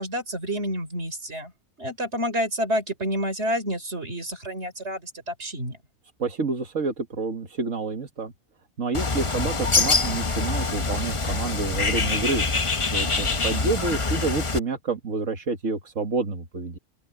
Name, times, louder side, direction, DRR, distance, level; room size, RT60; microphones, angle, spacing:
voice 1, 0.0-1.5 1.8-5.8, equal, 60° right, 4.7 m, -29 dB
voice 2, 6.2-8.3 8.8-16.8, right 3 dB, 85° right, 2.1 m, -29 dB
Bird, 8.9-14.6, left 3 dB, 25° left, 0.9 m, -25 dB
open air
omnidirectional pair, 1.3 m